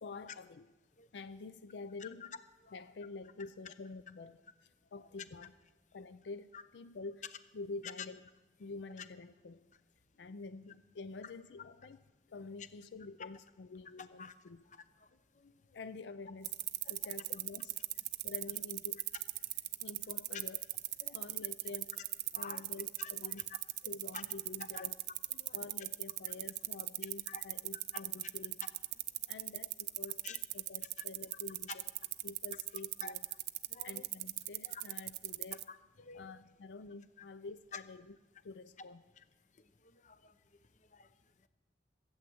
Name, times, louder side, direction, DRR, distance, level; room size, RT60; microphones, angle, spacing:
voice 1, 0.0-0.7 1.1-2.3 2.7-5.5 5.9-7.3 7.5-8.2 8.6-9.7 10.2-12.0 12.3-14.6 15.7-16.6 16.9-17.8 18.2-19.0 19.8-20.6 21.1-22.0 22.3-23.5 23.8-25.0 25.5-28.7 29.3-31.8 32.2-33.3 33.8-35.7 36.1-38.2 38.4-39.0, left 3 dB, 75° left, 12 dB, 0.4 m, -48 dB
sound 1, 16.4-35.6, right 18 dB, 65° right, 0.4 m, -38 dB
voice 2, 33.7-34.0 34.6-34.8 35.7-36.2 37.7-37.8 40.0-40.3 40.9-41.1, left 5 dB, 45° left, 11 dB, 0.8 m, -48 dB
15.5 x 8.8 x 7.8 m, 1.2 s
head